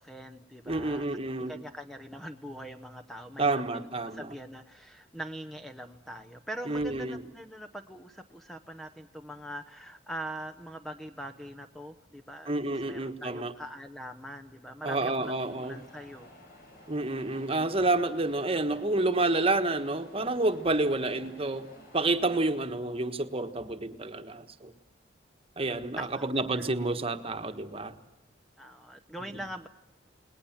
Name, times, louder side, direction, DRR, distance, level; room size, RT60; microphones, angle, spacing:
voice 1, 0.0-1.1 1.5-3.9 4.1-12.5 12.9-15.3 15.6-16.3 26.0-26.3 26.5-26.7 28.6-29.7, right 1 dB, ahead, 6 dB, 0.8 m, -42 dB
voice 2, 0.7-1.5 3.4-4.3 6.7-7.2 12.5-13.5 14.8-15.8 16.9-21.7 21.9-24.7 25.6-28.0, right 2 dB, 30° right, 8 dB, 1.4 m, -29 dB
sound 1, 14.8-22.4, left 1 dB, 50° left, 6.7 m, -53 dB
29.0 x 19.5 x 7.4 m, 0.98 s
head